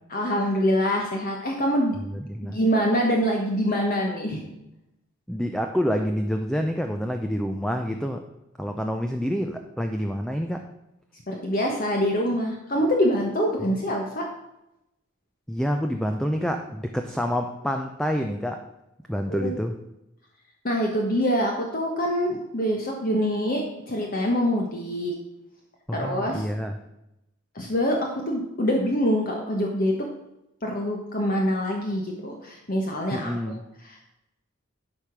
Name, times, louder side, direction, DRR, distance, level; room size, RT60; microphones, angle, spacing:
voice 1, 0.1-2.0 2.5-4.4 11.3-14.2 19.3-19.6 20.6-23.6 23.9-25.1 25.9-26.4 27.5-29.9 30.6-33.6, equal, 45° left, 1 dB, 1.2 m, -25 dB
voice 2, 1.9-2.6 5.3-8.2 8.6-10.7 13.7-13.8 15.5-18.6 19.1-19.8 25.9-26.8 33.1-33.6, equal, 5° left, 5 dB, 0.5 m, -28 dB
12.0 x 5.0 x 5.9 m, 0.89 s
head